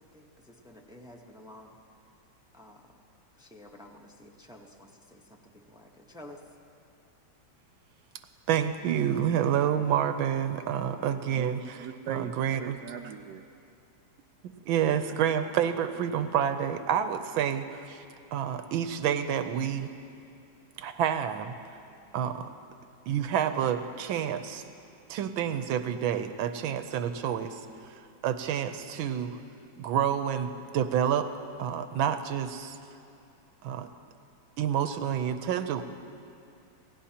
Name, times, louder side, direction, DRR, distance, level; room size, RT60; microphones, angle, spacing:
voice 1, 0.0-1.8 2.5-2.9 3.4-6.4, left 1 dB, 5° right, 1 dB, 0.3 m, -51 dB
voice 2, 8.5-11.6 12.1-12.8 14.6-18.0 18.3-19.9 20.8-21.5 22.1-22.5 23.1-24.6 25.1-27.6 28.2-29.4 29.8-31.3 31.6-32.8 33.6-33.9 34.6-35.9, right 9 dB, 85° right, 8 dB, 1.5 m, -28 dB
voice 3, 11.3-13.5, right 8 dB, 70° right, 6 dB, 1.0 m, -39 dB
27.5 x 17.5 x 2.9 m, 2.6 s
omnidirectional pair, 2.2 m